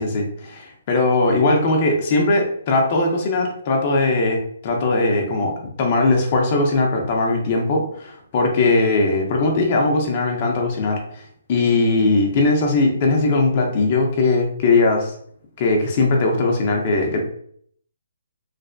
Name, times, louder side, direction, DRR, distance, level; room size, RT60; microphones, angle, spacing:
voice 1, 0.0-11.2 11.5-15.1 15.6-17.2, left 2 dB, 35° left, 1 dB, 0.7 m, -19 dB
3.2 x 2.7 x 2.6 m, 0.63 s
hypercardioid pair, 160°, 0 cm